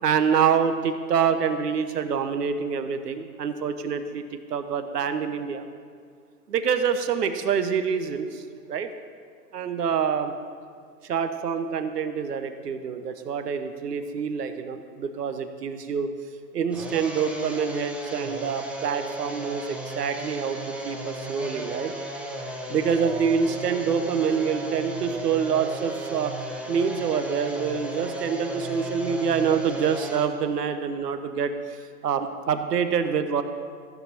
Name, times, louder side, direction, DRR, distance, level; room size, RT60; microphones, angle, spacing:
voice 1, 0.0-4.2 4.5-5.7 6.5-8.4 8.7-8.9 9.5-10.3 11.0-16.1 16.5-20.6 20.8-21.9 22.7-26.3 26.7-31.5 32.0-33.4, right 6 dB, 80° right, 9 dB, 1.1 m, -26 dB
sound 1, 16.7-30.3, right 1 dB, 5° right, 0.9 m, -35 dB
14.5 x 7.1 x 5.9 m, 2.1 s
hypercardioid pair, 120°, 47 cm